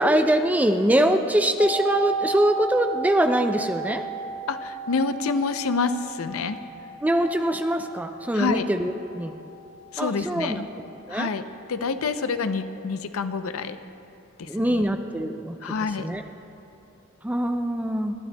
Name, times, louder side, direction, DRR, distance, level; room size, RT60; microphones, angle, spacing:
voice 1, 0.0-4.0 7.0-9.3 10.0-10.6 11.1-11.3 14.4-15.6 16.0-16.2 17.2-18.1, right 1 dB, 5° right, 6 dB, 0.4 m, -23 dB
sound 1, 1.6-11.3 11.6-11.7, right 4 dB, 55° left, 1.5 m, -34 dB
voice 2, 4.5-6.6 8.3-8.7 9.9-10.7 11.1-11.4 11.7-13.8 14.4-14.8 15.6-16.1, left 4 dB, 85° left, 10 dB, 0.5 m, -27 dB
20.5 x 13.0 x 2.2 m, 2.7 s
head